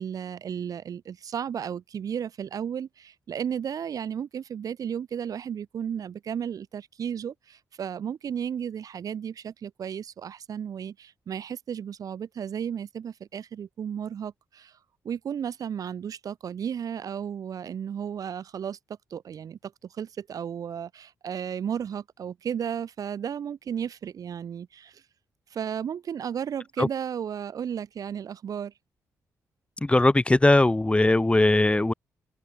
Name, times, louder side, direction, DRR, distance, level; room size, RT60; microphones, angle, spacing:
voice 1, 0.0-14.7 15.0-18.8 19.1-25.0 25.5-28.7, right 8 dB, 65° right, 7.2 m, -34 dB
voice 2, 29.8-31.9, left 2 dB, 15° left, 4.9 m, -20 dB
open air
cardioid pair, 70°, 7 cm